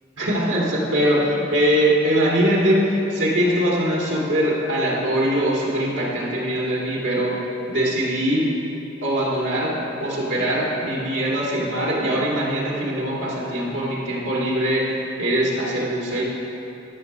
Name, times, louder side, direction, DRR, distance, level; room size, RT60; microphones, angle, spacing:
voice 1, 0.2-7.3 7.7-8.5 9.0-16.2, equal, 85° right, -5 dB, 2.5 m, -22 dB
13.0 x 6.2 x 5.5 m, 2.9 s
head